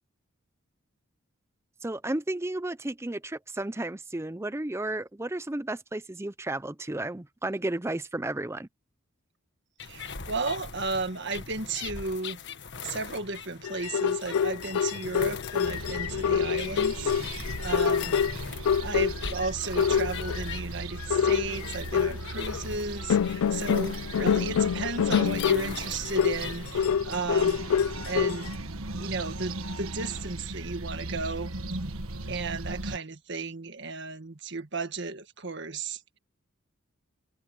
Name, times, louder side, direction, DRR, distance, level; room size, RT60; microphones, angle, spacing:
voice 1, 1.8-8.7, right 1 dB, 10° right, 0.5 m, -33 dB
sound 1, 9.8-26.8, left 5 dB, 55° left, 1.5 m, -41 dB
voice 2, 9.8-12.4 12.8-18.2 18.8-27.8 28.0-28.5 29.0-31.5 32.3-36.0, right 3 dB, 55° right, 1.6 m, -34 dB
sound 2, 13.6-19.5 19.8-20.5 21.0-22.6 23.1-28.5, left 7 dB, 80° left, 0.3 m, -26 dB
sound 3, 15.6-33.0, right 2 dB, 75° right, 1.5 m, -38 dB
head